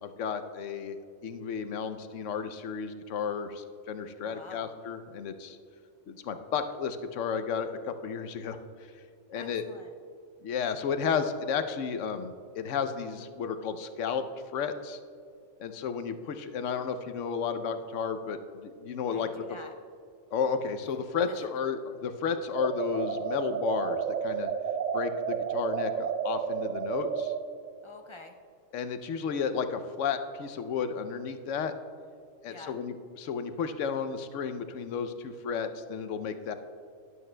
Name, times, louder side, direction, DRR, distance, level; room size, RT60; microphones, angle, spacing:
voice 1, 0.0-1.0 1.2-5.6 6.1-8.6 9.3-9.6 10.4-14.2 14.5-15.0 15.6-19.3 20.3-24.5 24.9-27.3 28.7-31.7 32.4-36.5, left 6 dB, 75° left, 9 dB, 0.9 m, -33 dB
voice 2, 4.2-4.7 9.3-9.9 19.1-19.7 21.3-21.5 27.8-28.3 32.5-32.8, left 2 dB, 40° left, 4 dB, 0.4 m, -48 dB
sound 1, 22.5-27.4, right 7 dB, 65° right, 0.4 m, -31 dB
12.0 x 11.0 x 2.2 m, 2.3 s
omnidirectional pair, 1.3 m